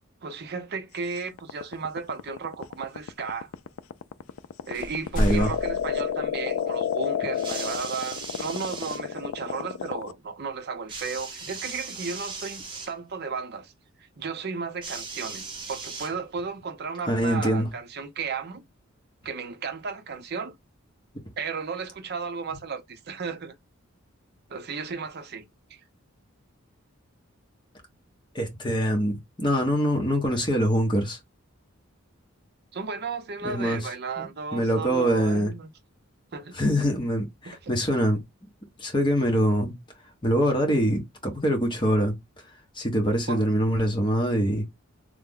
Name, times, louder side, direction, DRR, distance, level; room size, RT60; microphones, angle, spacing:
voice 1, 0.2-3.5 4.6-13.7 14.2-18.6 19.2-20.6 21.4-23.5 24.5-25.8 32.7-35.7 36.3-36.6 37.4-37.7 43.3-43.4, right 5 dB, 50° right, 0.5 m, -34 dB
sound 1, 1.2-10.1, left 8 dB, 75° left, 0.3 m, -30 dB
sound 2, 4.3-4.4 4.7-6.8, equal, 40° left, 0.6 m, -30 dB
voice 2, 5.2-5.5 17.1-17.7 28.3-31.2 33.4-33.8 34.2-35.5 36.6-38.2 38.8-39.8 40.2-42.1 42.8-44.7, equal, 25° left, 1.0 m, -24 dB
sound 3, 7.3-9.0 10.9-12.9 14.8-16.5 17.5-17.6, right 4 dB, 25° right, 0.8 m, -38 dB
3.3 x 2.0 x 3.6 m
head